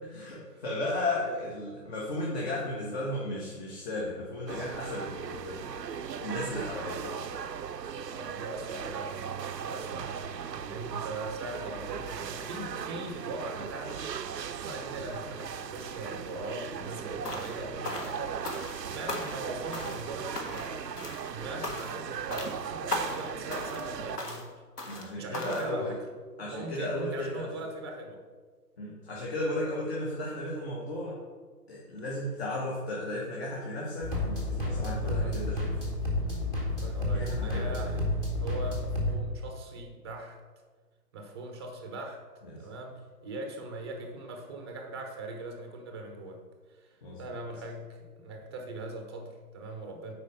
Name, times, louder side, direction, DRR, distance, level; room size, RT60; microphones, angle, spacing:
voice 1, 0.6-7.0 9.9-10.0 17.2-17.4 24.8-26.0 26.4-27.5 28.8-31.2 31.7-35.7 37.1-38.0 42.4-42.6 47.0-47.2, left 1 dB, 40° left, -4 dB, 1.7 m, -35 dB
sound 1, 4.5-24.2, right 7 dB, 80° right, 0.6 m, -38 dB
voice 2, 6.8-7.4 8.1-14.0 14.4-18.3 18.9-24.5 24.9-26.1 26.4-28.2 34.7-35.5 36.7-38.1 38.4-40.4 41.1-42.2 42.6-46.4 46.7-50.1, right 2 dB, 15° right, 4 dB, 0.7 m, -41 dB
sound 2, 17.2-17.6 17.8-18.8 19.1-19.5 19.7-20.1 20.4-20.7 21.0-21.3 21.6-22.0 22.3-22.6 22.9-23.2 23.5-23.9 24.2-24.5 24.8-25.1 25.3-25.7, left 2 dB, 70° left, 1.8 m, -37 dB
sound 3, 34.0-39.2, left 1 dB, 10° left, 0.9 m, -30 dB
8.5 x 4.9 x 5.4 m, 1.5 s
figure-of-eight pair, 135°, 49 cm